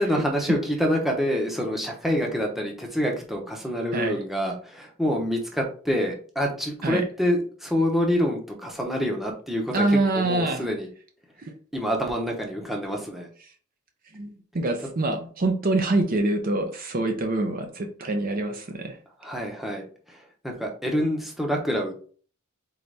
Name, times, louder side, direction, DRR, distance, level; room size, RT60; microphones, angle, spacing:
voice 1, 0.0-10.9 11.7-13.3 19.2-22.1, equal, ahead, 0 dB, 0.8 m, -27 dB
voice 2, 9.7-10.6 11.4-11.5 14.1-19.0, right 2 dB, 45° right, 5 dB, 0.6 m, -25 dB
4.0 x 3.9 x 3.3 m, 0.43 s
head